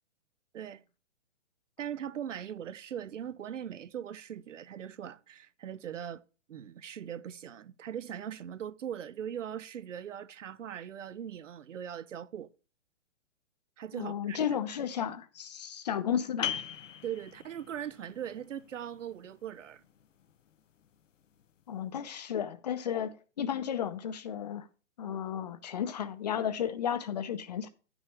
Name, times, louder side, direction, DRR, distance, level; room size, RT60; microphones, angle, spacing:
voice 1, 1.8-6.2 6.5-12.5 13.8-14.4 17.0-19.8, right 9 dB, 85° right, 0.8 m, -40 dB
voice 2, 13.9-16.6 21.7-24.7 25.0-27.7, left 9 dB, 35° left, 0.7 m, -33 dB
sound 1, 16.4-21.8, left 9 dB, 90° left, 0.9 m, -42 dB
9.8 x 6.3 x 4.5 m
hypercardioid pair, 165°, 36 cm